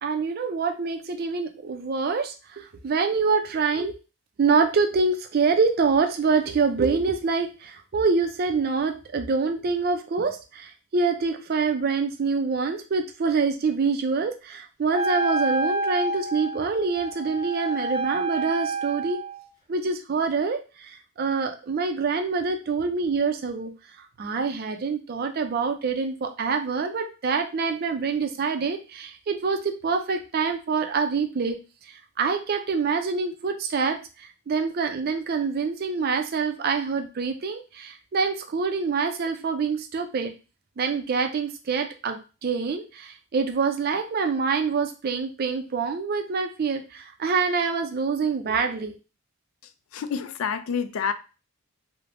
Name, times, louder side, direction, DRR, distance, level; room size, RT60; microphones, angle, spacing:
voice 1, 0.0-3.9 4.4-19.2 19.7-23.7 24.2-31.6 31.9-40.3 40.8-49.0, right 4 dB, 45° right, 0.4 m, -26 dB
Wind instrument woodwind instrument, 14.9-19.4, right 2 dB, 20° right, 0.7 m, -28 dB
voice 2, 49.9-51.1, left 6 dB, 75° left, 0.3 m, -28 dB
3.2 x 2.0 x 2.5 m
head